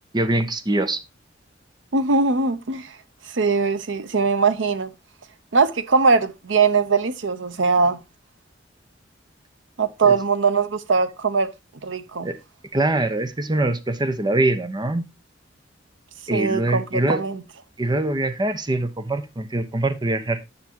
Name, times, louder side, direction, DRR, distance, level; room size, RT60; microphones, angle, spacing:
voice 1, 0.1-1.0 10.1-10.2 12.2-12.4 12.7-15.1 16.3-17.2 17.8-20.4, right 2 dB, 25° right, 0.8 m, -23 dB
voice 2, 1.9-2.9 3.3-4.9 5.5-8.0 9.8-11.5 11.8-12.3 16.3-17.4, right 4 dB, 80° right, 0.7 m, -21 dB
9.5 x 6.6 x 2.8 m
head